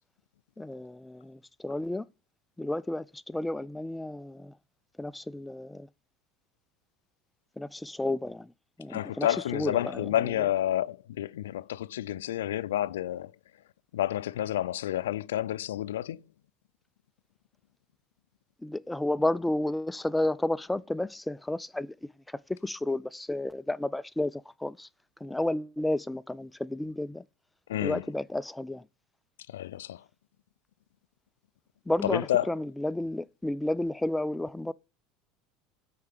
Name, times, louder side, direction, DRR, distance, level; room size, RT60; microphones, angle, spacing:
voice 1, 0.6-2.1 2.6-4.6 5.0-5.9 7.6-8.5 8.8-9.3 9.5-10.1 18.6-24.9 25.2-27.2 27.8-28.9 31.9-34.7, left 1 dB, 10° left, 0.4 m, -32 dB
voice 2, 8.9-13.3 13.9-16.2 27.7-28.0 29.5-30.0 32.0-32.5, left 12 dB, 90° left, 0.3 m, -30 dB
6.6 x 4.8 x 6.6 m
hypercardioid pair, 90°, 0 cm